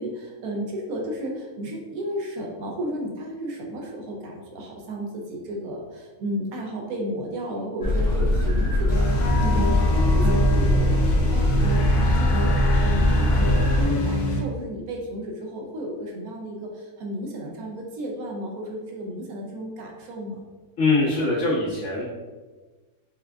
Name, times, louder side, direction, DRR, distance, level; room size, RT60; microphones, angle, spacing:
voice 1, 0.0-20.4, equal, 70° right, 0 dB, 1.0 m, -33 dB
sound 1, 7.8-13.8, left 1 dB, 45° left, 0.9 m, -22 dB
sound 2, 8.9-14.4, equal, 85° left, 1.2 m, -23 dB
voice 2, 20.8-22.0, left 3 dB, 65° left, -10 dB, 1.8 m, -22 dB
4.8 x 2.2 x 2.3 m, 1.3 s
omnidirectional pair, 1.6 m